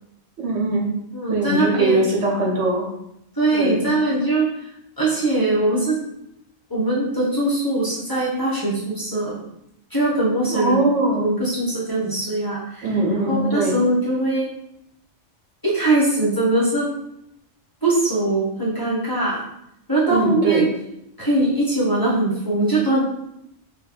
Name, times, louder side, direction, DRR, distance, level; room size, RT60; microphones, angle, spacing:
voice 1, 0.4-0.9 1.3-2.9 3.5-3.9 10.5-11.3 12.8-13.8 20.1-20.7, right 2 dB, 65° right, -2 dB, 1.1 m, -21 dB
voice 2, 1.1-2.1 3.3-4.7 5.0-6.0 6.7-9.4 9.9-10.8 11.2-12.9 13.3-14.5 15.6-16.9 17.8-19.4 19.9-20.7 21.2-23.0, right 2 dB, 20° left, -6 dB, 0.9 m, -21 dB
4.0 x 2.3 x 4.5 m, 0.80 s
omnidirectional pair, 1.3 m